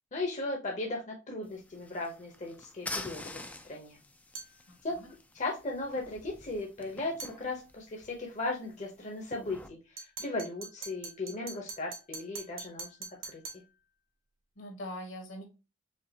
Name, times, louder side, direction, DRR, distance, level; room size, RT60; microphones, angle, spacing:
voice 1, 0.1-4.0 4.8-5.0 5.3-12.9 13.3-13.4, left 2 dB, 40° left, 0 dB, 0.8 m, -37 dB
sound 1, 1.4-9.7, left 2 dB, 5° left, 0.3 m, -47 dB
sound 2, 4.3-4.6 7.2-7.4 10.0-13.7, right 4 dB, 85° right, 1.3 m, -44 dB
voice 2, 4.7-5.1 14.6-15.4, left 1 dB, 70° left, 3 dB, 1.4 m, -42 dB
5.2 x 2.4 x 2.7 m, 0.29 s
head